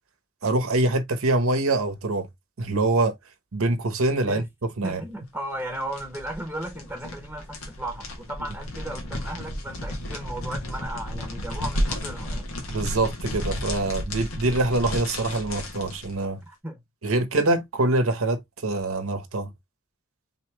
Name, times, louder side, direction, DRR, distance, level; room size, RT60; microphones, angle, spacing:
voice 1, 0.4-2.3 2.6-3.1 3.5-4.5 4.8-5.0 12.7-16.4 17.0-19.5, right 2 dB, 90° right, 1.0 m, -24 dB
voice 2, 4.8-12.5 16.5-16.8, right 1 dB, 10° right, 0.9 m, -35 dB
sound 1, 5.5-16.2, left 1 dB, 90° left, 1.4 m, -33 dB
4.1 x 3.0 x 3.4 m
head